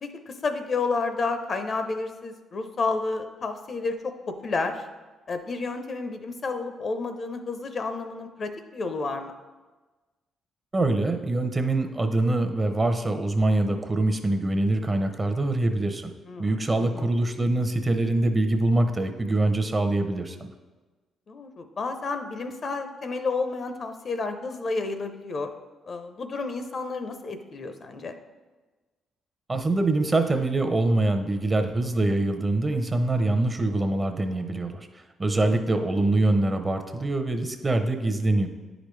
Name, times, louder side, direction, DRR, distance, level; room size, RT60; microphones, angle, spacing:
voice 1, 0.0-4.9 5.3-9.3 16.3-17.1 21.3-25.5 25.8-28.1 35.4-35.6, left 3 dB, 45° left, 8 dB, 0.6 m, -31 dB
voice 2, 10.7-16.1 16.4-20.4 29.5-34.9 35.2-38.5, right 2 dB, 25° right, 6 dB, 0.7 m, -24 dB
9.8 x 5.1 x 3.2 m, 1.3 s
cardioid pair, 90°, 0 cm